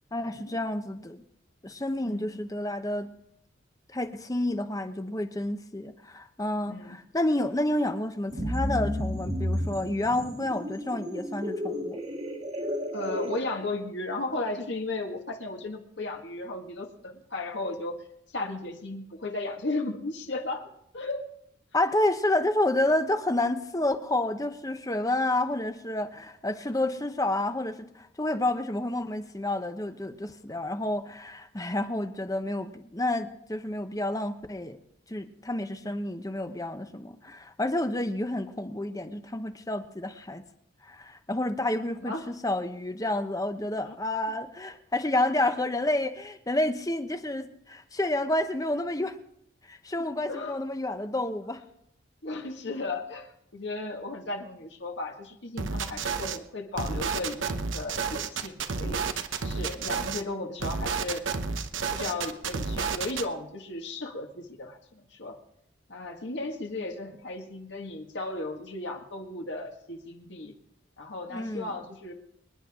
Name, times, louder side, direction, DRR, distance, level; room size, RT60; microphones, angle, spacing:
voice 1, 0.1-1.2 1.6-3.1 3.9-12.0 21.7-34.8 35.1-40.4 40.8-49.2 49.7-51.6 71.3-71.7, left 1 dB, 20° left, 8 dB, 0.8 m, -29 dB
voice 2, 2.1-2.4 6.7-7.0 12.9-18.0 18.3-21.3 35.8-36.0 42.0-42.3 43.8-43.9 50.0-50.6 52.2-53.3 53.5-59.0 59.4-61.2 61.9-65.4 65.9-70.5 71.0-72.1, left 2 dB, 65° left, 3 dB, 1.8 m, -35 dB
sound 1, 8.3-13.4, equal, 35° right, 1.6 m, -32 dB
sound 2, 55.6-56.4 56.8-60.2 60.6-63.3, right 5 dB, 85° right, 0.9 m, -31 dB
25.5 x 10.5 x 3.7 m, 0.75 s
head